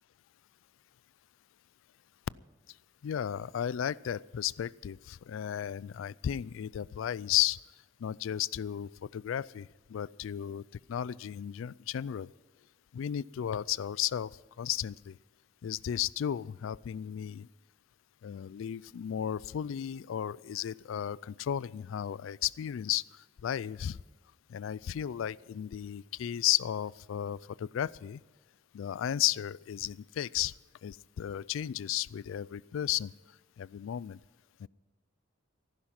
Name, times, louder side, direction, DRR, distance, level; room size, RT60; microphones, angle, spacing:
voice 1, 3.0-7.6 8.0-10.6 10.9-12.3 12.9-15.2 15.6-17.5 18.2-23.0 23.4-24.0 24.5-28.2 28.7-30.5 30.8-33.1 33.6-34.2 34.6-34.7, left 10 dB, 70° left, 22 dB, 0.3 m, -34 dB
14.5 x 12.0 x 5.9 m, 1.3 s
head